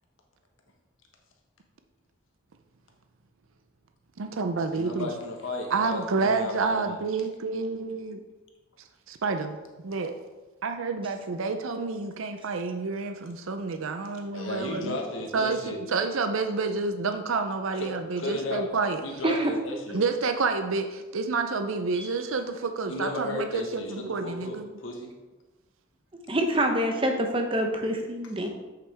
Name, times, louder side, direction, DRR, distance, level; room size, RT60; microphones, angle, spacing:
voice 1, 4.2-5.1 5.7-8.2 9.1-9.6 9.8-10.2 10.6-15.0 15.3-19.0 19.9-24.7, right 4 dB, 75° right, 7 dB, 0.5 m, -29 dB
voice 2, 4.7-7.0 14.3-15.8 17.8-17.9 18.2-18.7 19.0-20.0 22.9-25.1, left 2 dB, 70° left, 1 dB, 1.4 m, -34 dB
voice 3, 26.3-28.5, right 1 dB, 25° right, 4 dB, 0.8 m, -26 dB
8.1 x 6.7 x 3.4 m, 1.2 s
head